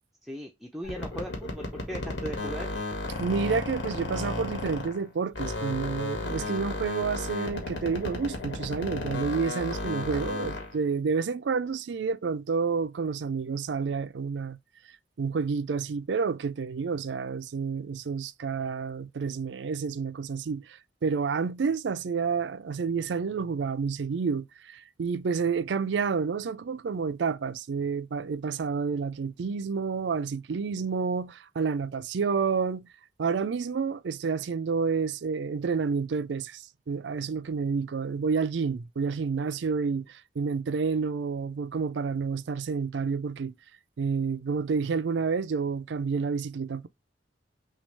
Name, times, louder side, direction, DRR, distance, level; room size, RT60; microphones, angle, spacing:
voice 1, 0.2-2.7, right 1 dB, ahead, 0.5 m, -38 dB
sound 1, 0.8-5.1 5.3-10.8, left 2 dB, 75° left, 1.5 m, -33 dB
voice 2, 3.2-14.6 15.2-32.9 33.2-43.5 44.0-46.9, right 5 dB, 70° right, 0.4 m, -29 dB
6.1 x 2.4 x 3.2 m
head